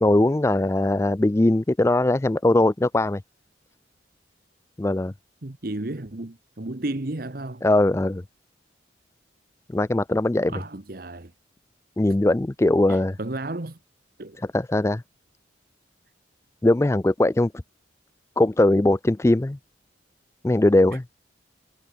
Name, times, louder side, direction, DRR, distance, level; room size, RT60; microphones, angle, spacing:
voice 1, 0.0-3.2 4.8-5.1 7.6-8.2 9.7-10.6 12.0-13.2 14.5-15.0 16.6-17.5 18.4-19.6 20.4-21.0, left 1 dB, 15° left, 0.3 m, -20 dB
voice 2, 5.4-7.6 10.5-11.3 12.9-13.8 14.2-14.4 20.9-21.0, right 2 dB, 50° right, 1.2 m, -33 dB
head